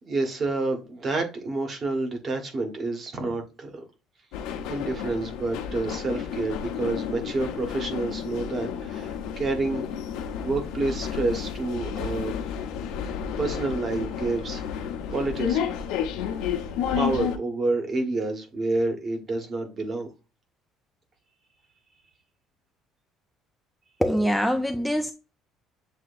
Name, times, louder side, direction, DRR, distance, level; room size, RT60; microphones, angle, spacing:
voice 1, 0.0-3.8 4.7-9.9 10.3-12.4 13.4-15.6 17.0-20.1, right 2 dB, 35° right, 1.3 m, -29 dB
sound 1, 4.3-17.4, left 8 dB, 85° left, 0.8 m, -31 dB
voice 2, 24.0-25.1, equal, ahead, 0.3 m, -24 dB
7.2 x 2.9 x 2.5 m
cardioid pair, 140°, 0 cm